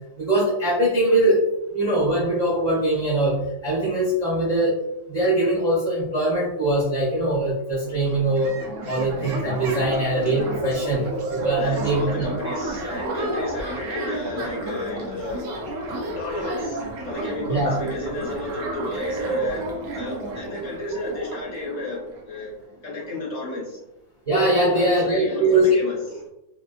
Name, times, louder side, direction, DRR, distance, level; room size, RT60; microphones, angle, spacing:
voice 1, 0.2-1.4 1.7-4.8 5.1-8.5 8.8-12.2 17.5-17.8 24.2-25.8, right 1 dB, 25° right, -8 dB, 1.1 m, -22 dB
sound 1, 7.6-7.7 7.8-22.4, right 2 dB, 65° right, 1.0 m, -31 dB
voice 2, 11.6-15.5 16.2-22.5 22.8-23.8 24.6-26.2, left 2 dB, 50° left, -3 dB, 1.0 m, -32 dB
3.5 x 2.8 x 2.4 m, 0.87 s
omnidirectional pair, 1.9 m